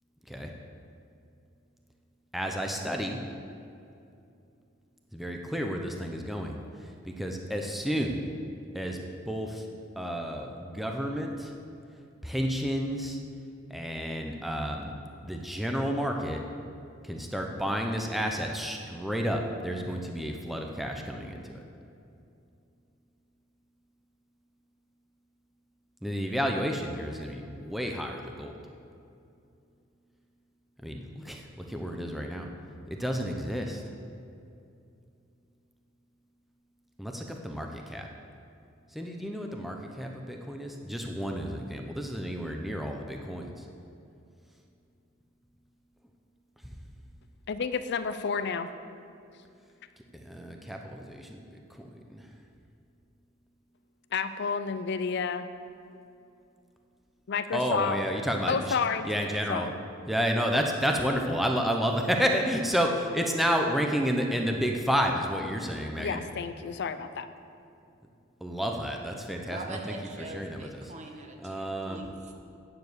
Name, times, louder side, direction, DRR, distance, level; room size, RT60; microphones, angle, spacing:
voice 1, 2.3-3.2 5.1-8.2 8.7-9.0 9.3-9.7 10.0-11.5 12.2-13.2 13.7-15.0 15.2-16.4 17.0-21.6 26.0-28.5 30.8-32.5 32.9-33.8 37.0-38.1 38.9-43.7 46.6-46.7 50.1-51.4 51.8-52.3 57.5-58.8 59.0-59.7 60.1-66.2 68.4-69.9 70.3-70.8 71.4-72.0, equal, ahead, 2 dB, 0.6 m, -31 dB
voice 2, 47.5-48.7 54.1-55.5 57.3-58.0 58.5-59.1 59.5-59.7 66.0-67.3, left 5 dB, 60° left, 11 dB, 0.5 m, -30 dB
voice 3, 69.5-72.3, right 2 dB, 35° right, 2 dB, 1.3 m, -42 dB
9.5 x 7.0 x 7.9 m, 2.6 s
head